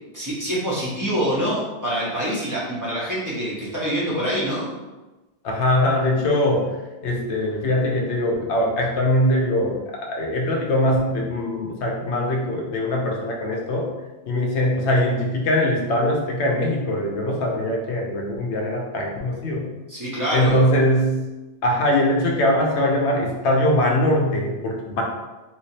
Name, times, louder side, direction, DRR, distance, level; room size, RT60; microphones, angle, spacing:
voice 1, 0.1-4.7 19.9-20.7, equal, 20° right, -8 dB, 1.0 m, -25 dB
voice 2, 5.4-6.7 7.0-13.9 14.3-19.7 20.3-21.2 21.6-25.0, left 1 dB, 85° left, 0 dB, 1.0 m, -22 dB
3.2 x 3.1 x 2.8 m, 1.1 s
omnidirectional pair, 1.1 m